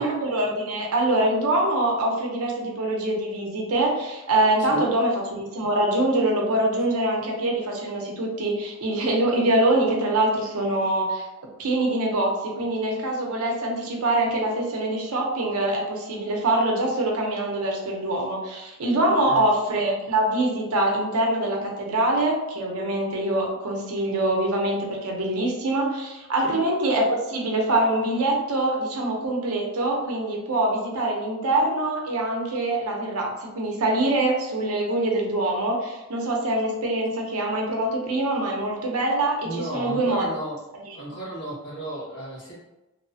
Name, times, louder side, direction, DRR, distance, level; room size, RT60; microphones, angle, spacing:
voice 1, 0.0-11.2 11.6-40.3 40.9-41.0, right 1 dB, 85° right, 0 dB, 0.6 m, -24 dB
voice 2, 19.1-19.4 26.4-26.6 39.4-40.6 40.9-42.6, right 1 dB, 60° left, -6 dB, 1.2 m, -34 dB
3.0 x 2.1 x 2.6 m, 0.99 s
head